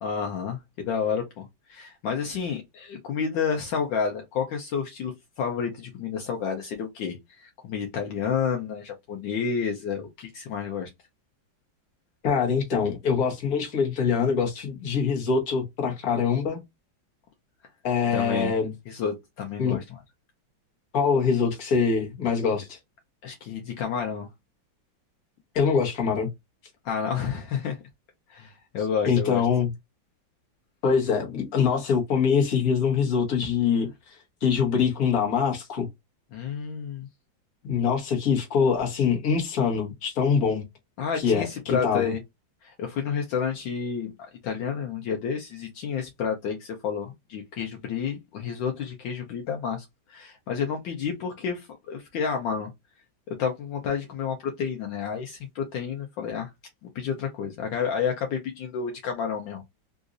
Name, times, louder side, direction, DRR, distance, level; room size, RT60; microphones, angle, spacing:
voice 1, 0.0-10.9 18.1-18.5 18.9-19.8 23.2-24.3 26.8-27.8 28.3-29.4 36.3-37.1 41.0-42.2 42.6-44.1 44.4-52.7 53.3-56.5 56.8-59.6, left 6 dB, 75° left, 1.4 m, -30 dB
voice 2, 12.2-16.6 17.8-18.7 19.6-19.8 20.9-22.8 25.5-26.3 29.0-29.7 30.8-33.9 34.4-35.9 37.6-40.6 41.2-42.1, left 6 dB, 50° left, 1.5 m, -24 dB
3.9 x 2.5 x 2.5 m
omnidirectional pair, 2.1 m